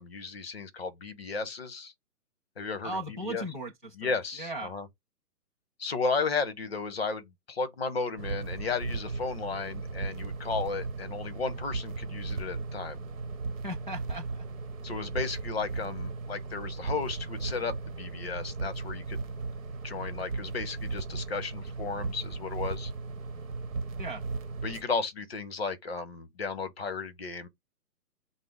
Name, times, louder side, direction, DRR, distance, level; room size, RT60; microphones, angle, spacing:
voice 1, 0.0-1.9 2.6-3.5 3.9-4.9 5.8-13.0 14.8-19.2 19.8-22.9 24.6-27.5, left 4 dB, 40° left, 0.9 m, -34 dB
voice 2, 2.8-3.9 4.4-4.7 13.6-14.4 24.0-24.2, right 1 dB, 35° right, 0.4 m, -37 dB
sound 1, 8.2-24.8, right 4 dB, 55° right, 1.0 m, -36 dB
5.8 x 2.0 x 3.5 m
hypercardioid pair, 180°, 47 cm